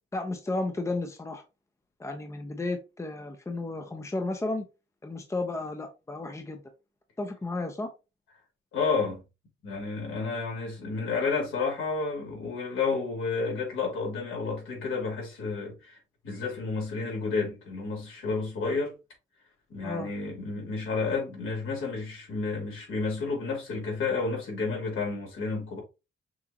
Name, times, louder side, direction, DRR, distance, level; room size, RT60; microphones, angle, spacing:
voice 1, 0.1-1.4 2.0-4.6 5.0-6.6 7.2-7.9 19.8-20.1, left 2 dB, 15° left, 0.9 m, -33 dB
voice 2, 8.7-9.2 9.6-19.0 19.7-25.8, left 4 dB, 80° left, 3.0 m, -31 dB
6.3 x 2.8 x 2.9 m
cardioid pair, 95°, 21 cm